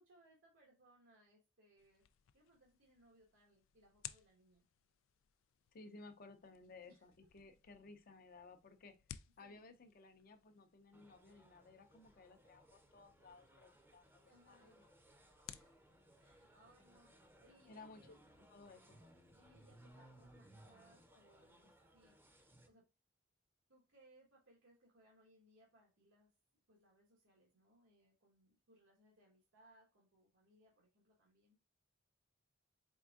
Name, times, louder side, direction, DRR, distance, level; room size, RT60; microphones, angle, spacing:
voice 1, 0.0-2.0 2.3-4.6 6.9-7.0 9.4-9.7 14.2-14.8 15.5-15.9 16.2-18.2 19.3-22.2 22.6-22.8 23.7-26.3 26.7-31.6, right 1 dB, 90° right, 1.3 m, -69 dB
sound 1, 1.8-20.3, left 11 dB, 90° left, 0.3 m, -61 dB
voice 2, 5.7-8.9 9.4-14.9 17.7-18.2 18.5-19.0, left 3 dB, 50° left, 0.6 m, -58 dB
sound 2, 10.9-22.7, right 1 dB, 10° right, 0.6 m, -65 dB
4.5 x 3.4 x 2.4 m
head